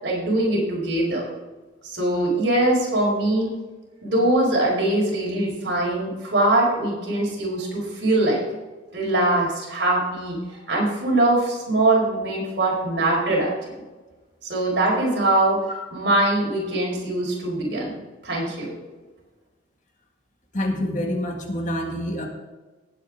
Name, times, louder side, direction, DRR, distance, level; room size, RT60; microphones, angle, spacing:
voice 1, 0.0-1.3 1.8-3.5 4.0-8.4 8.9-13.5 14.4-15.6 15.9-17.9 18.2-18.7, right 1 dB, 60° right, -3 dB, 4.8 m, -22 dB
voice 2, 20.5-22.3, left 1 dB, 40° left, 2 dB, 1.9 m, -26 dB
19.0 x 8.3 x 3.7 m, 1.2 s
head